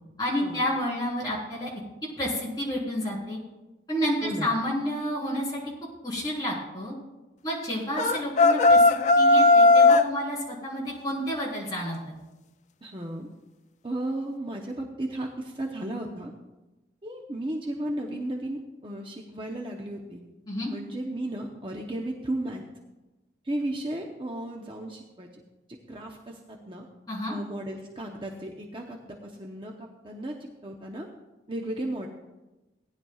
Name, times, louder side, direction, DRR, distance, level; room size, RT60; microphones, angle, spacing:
voice 1, 0.2-1.7 2.2-3.4 3.9-5.6 6.0-7.0 7.4-12.0 20.5-20.7 27.1-27.3, equal, 20° left, -6 dB, 3.9 m, -30 dB
sound 1, 8.0-10.1, left 3 dB, 40° left, 0.4 m, -17 dB
voice 2, 12.8-13.3 13.8-16.3 17.0-20.2 20.7-22.6 23.4-25.3 25.9-26.9 27.3-30.4 30.6-31.1 31.5-32.1, right 1 dB, 30° right, 1 dB, 0.8 m, -34 dB
18.0 x 10.5 x 2.4 m, 1.1 s
head